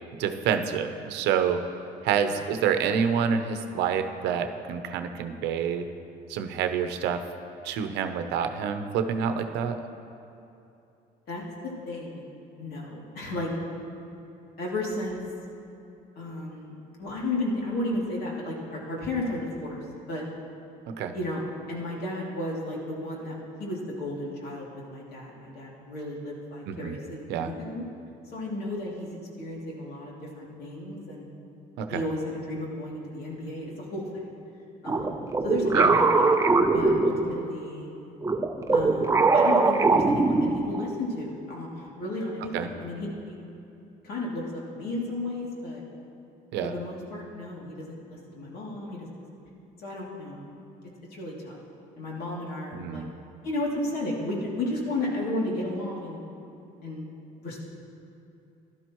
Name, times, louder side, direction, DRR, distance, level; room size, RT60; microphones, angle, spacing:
voice 1, 0.2-1.6 2.0-5.9 6.3-7.2 7.6-9.8 20.9-21.1 26.7-27.0 27.3-27.5 31.8-32.0 35.7-35.9 42.5-42.7 46.5-46.7 52.7-53.1, right 7 dB, 90° right, 8 dB, 0.8 m, -27 dB
voice 2, 11.9-12.2 12.6-13.5 14.6-15.1 16.2-19.8 20.1-20.2 21.1-21.4 21.7-23.3 23.6-27.8 28.3-29.1 29.4-31.2 31.9-34.0 34.8-36.3 36.7-37.9 38.7-43.4 44.0-45.8 46.6-49.2 49.8-50.5 51.1-51.6 52.0-53.0 53.4-56.2 56.8-57.0 57.4-57.6, left 1 dB, 70° left, -4 dB, 2.8 m, -33 dB
sound 1, 34.9-37.6 38.2-40.9, right 3 dB, 15° right, 0.6 m, -22 dB
15.5 x 12.0 x 3.1 m, 2.8 s
cardioid pair, 110°, 17 cm